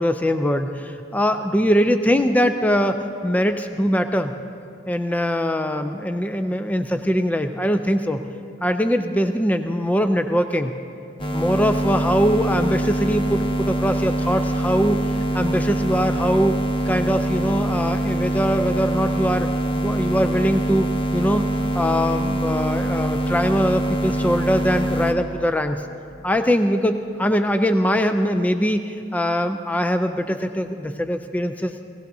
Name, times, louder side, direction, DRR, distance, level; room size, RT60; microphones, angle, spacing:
voice 1, 0.0-4.3 4.9-8.2 8.6-10.7 11.3-15.0 15.3-16.6 16.9-19.5 19.8-20.9 21.1-21.5 21.7-25.8 26.2-31.7, equal, 10° left, 8 dB, 0.3 m, -22 dB
sound 1, 11.2-25.1, right 1 dB, 25° left, 0.8 m, -24 dB
18.0 x 17.5 x 2.7 m, 2.6 s
head